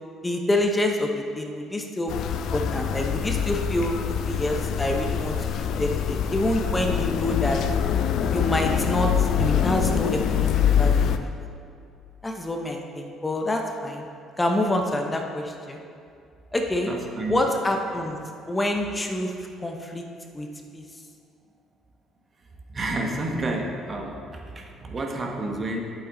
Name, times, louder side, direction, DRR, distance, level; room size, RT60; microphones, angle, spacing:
voice 1, 0.2-7.6 8.3-11.3 12.2-14.1 14.4-15.8 16.5-16.9 17.3-18.2 18.5-20.1 20.3-20.5 20.7-20.8, left 1 dB, 20° left, 2 dB, 1.0 m, -27 dB
sound 1, 2.1-11.2, left 8 dB, 65° left, 0.5 m, -24 dB
voice 2, 16.9-17.4 22.7-24.2 24.5-25.8, right 2 dB, 35° right, 1 dB, 1.3 m, -29 dB
8.4 x 7.8 x 4.0 m, 2.4 s
hypercardioid pair, 55°, 0 cm